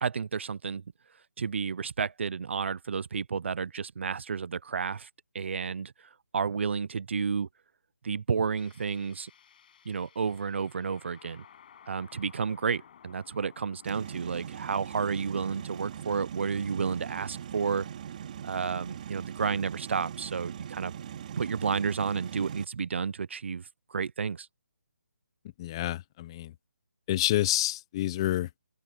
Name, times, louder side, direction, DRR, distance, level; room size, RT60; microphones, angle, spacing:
voice 1, 0.0-0.8 1.4-5.1 5.3-5.9 6.3-7.5 8.0-9.3 9.9-11.4 11.9-17.9 18.4-20.9 21.4-24.5, right 6 dB, 50° right, 0.5 m, -31 dB
sound 1, 8.6-16.0, left 8 dB, 35° left, 7.0 m, -57 dB
sound 2, 13.8-22.6, right 9 dB, 35° right, 3.4 m, -41 dB
voice 2, 25.6-26.5 27.1-28.5, left 14 dB, 20° left, 0.7 m, -28 dB
open air
hypercardioid pair, 165°, 8 cm